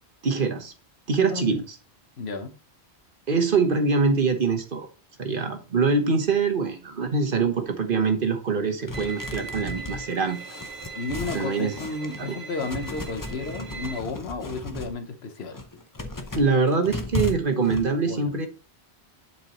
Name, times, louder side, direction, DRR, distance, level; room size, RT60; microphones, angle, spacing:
voice 1, 0.2-0.7 1.1-1.6 3.3-4.9 5.2-10.4 11.3-11.7 12.2-12.4 16.4-18.5, right 4 dB, 55° right, 1.2 m, -24 dB
voice 2, 1.3-1.6 2.2-2.6 10.9-15.6 18.1-18.3, left 3 dB, 80° left, 1.3 m, -33 dB
sound 1, 8.9-12.3 12.6-15.0 15.4-17.8, left 2 dB, 20° left, 0.7 m, -35 dB
Bowed string instrument, 8.9-14.0, right 4 dB, 80° right, 1.3 m, -39 dB
10.5 x 4.6 x 3.0 m
omnidirectional pair, 1.1 m